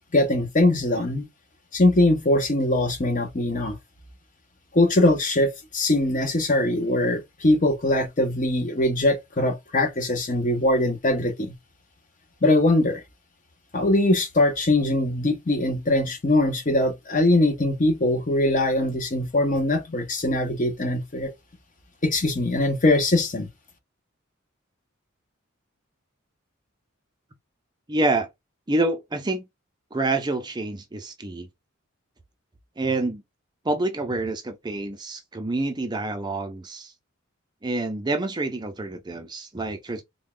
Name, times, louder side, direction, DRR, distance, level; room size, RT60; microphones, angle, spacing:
voice 1, 0.1-1.3 1.7-3.8 4.7-11.5 12.4-13.0 13.7-21.3 22.0-23.5, left 1 dB, 40° left, 0.9 m, -22 dB
voice 2, 27.9-28.3 28.7-29.4 29.9-31.5 32.8-33.2 33.6-36.9 37.6-40.0, right 2 dB, 20° right, 0.6 m, -27 dB
3.6 x 2.3 x 3.7 m
head